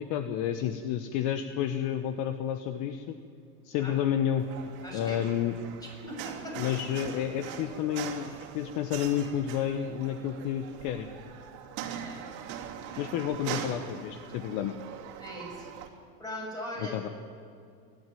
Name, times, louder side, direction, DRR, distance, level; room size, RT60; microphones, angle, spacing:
voice 1, 0.0-3.2 3.6-4.5 4.9-5.5 6.6-11.1 13.0-14.7 16.9-17.1, left 10 dB, 45° left, 8 dB, 1.2 m, -30 dB
sound 1, 4.4-15.9, right 8 dB, 50° right, 2.9 m, -41 dB
voice 2, 4.8-5.7 6.1-6.6 12.0-12.2 12.9-13.0 15.2-15.7 16.2-17.1, left 1 dB, 10° left, -1 dB, 6.9 m, -40 dB
28.0 x 12.0 x 9.2 m, 2.3 s
supercardioid pair, 135°, 45 cm